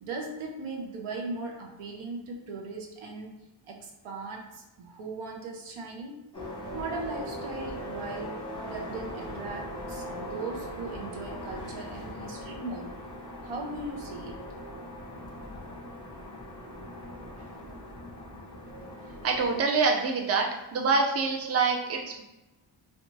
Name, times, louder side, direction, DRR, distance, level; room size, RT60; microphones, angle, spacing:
voice 1, 0.0-3.3 3.6-6.2 6.7-12.9 13.4-14.4, right 3 dB, 80° right, 2 dB, 0.7 m, -38 dB
sound 1, 6.3-19.6, equal, 10° left, 0.8 m, -40 dB
voice 2, 19.2-22.2, right 4 dB, 30° right, 1 dB, 0.5 m, -26 dB
2.8 x 2.2 x 2.6 m, 0.98 s
cardioid pair, 75°, 50 cm